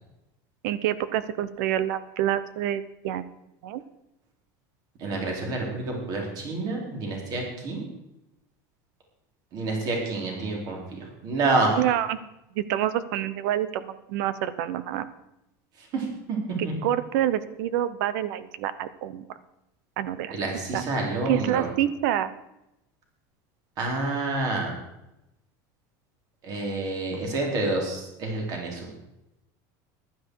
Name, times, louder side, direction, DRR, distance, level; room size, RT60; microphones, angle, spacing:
voice 1, 0.6-3.3 3.6-3.8 11.8-12.2 12.5-15.1 16.6-19.3 20.0-20.3 20.7-20.8 21.3-22.3, right 12 dB, 75° right, 15 dB, 0.9 m, -27 dB
voice 2, 5.0-7.8 9.5-11.8 15.8-16.7 20.3-21.7 23.8-24.7 26.4-28.9, right 2 dB, 40° right, 0 dB, 4.0 m, -28 dB
15.0 x 11.5 x 4.8 m, 0.89 s
cardioid pair, 155°, 10 cm